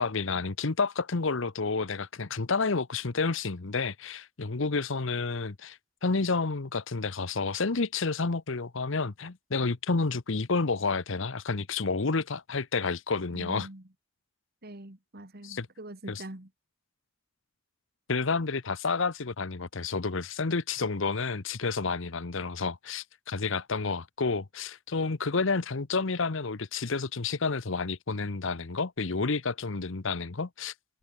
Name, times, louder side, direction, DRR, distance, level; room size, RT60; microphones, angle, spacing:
voice 1, 0.0-13.7 15.4-15.7 16.1-16.2 18.1-30.7, left 4 dB, 65° left, 1.0 m, -30 dB
voice 2, 13.3-13.8 14.6-16.5, right 1 dB, 50° right, 2.3 m, -44 dB
head